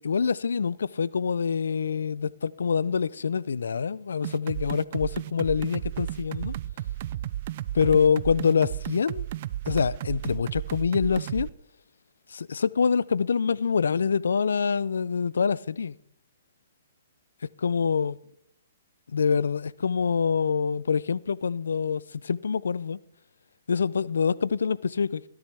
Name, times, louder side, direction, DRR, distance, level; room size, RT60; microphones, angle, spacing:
voice 1, 0.0-6.5 7.7-9.3 9.7-11.5 12.3-15.9 17.6-18.2 19.1-23.0 23.7-25.3, left 6 dB, 80° left, 0.4 m, -25 dB
sound 1, 4.2-11.5, right 13 dB, 50° right, 0.4 m, -33 dB
18.5 x 10.5 x 3.4 m
hypercardioid pair, 135°, 0 cm